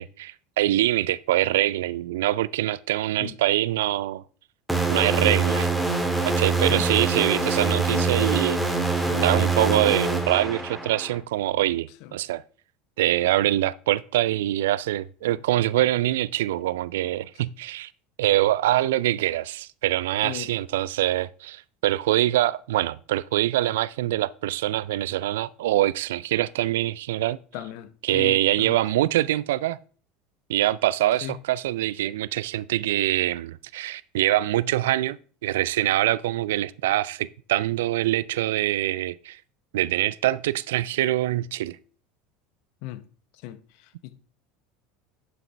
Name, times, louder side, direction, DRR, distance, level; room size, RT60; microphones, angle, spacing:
voice 1, 0.0-4.2 4.9-5.7 6.3-8.6 9.1-12.4 13.0-17.9 18.2-27.4 28.0-29.8 30.5-35.2 35.4-39.4 39.7-41.8, right 14 dB, 70° right, 0.3 m, -24 dB
sound 1, 4.7-11.2, right 3 dB, ahead, 1.9 m, -24 dB
voice 2, 27.5-28.8 31.2-31.4 42.8-43.0 43.4-43.6 44.0-44.1, left 14 dB, 60° left, 0.8 m, -36 dB
11.0 x 5.8 x 3.4 m
figure-of-eight pair, 75°, 0 cm